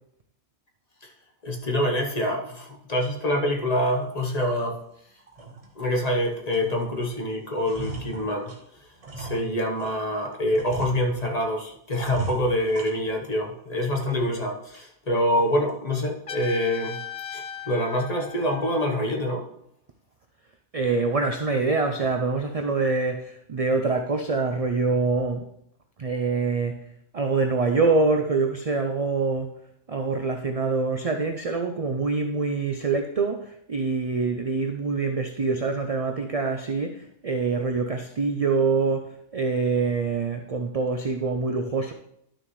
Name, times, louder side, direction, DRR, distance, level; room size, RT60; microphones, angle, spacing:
voice 1, 1.4-4.8 5.7-8.5 9.2-17.0 17.3-19.5, left 1 dB, 35° left, 1.2 m, -26 dB
sound 1, 4.0-4.2 4.6-4.8 5.2-6.1 6.5-7.1 7.4-10.0 10.5-11.5 12.0-13.4 13.8-14.4 14.7-14.8 15.4-15.7, right 3 dB, 30° right, 1.1 m, -39 dB
Trumpet, 16.3-19.1, left 8 dB, 65° left, 0.3 m, -38 dB
voice 2, 20.7-25.5 26.0-26.8 27.1-29.5 29.9-41.9, right 4 dB, 50° right, 0.4 m, -25 dB
11.5 x 6.3 x 3.1 m
omnidirectional pair, 1.3 m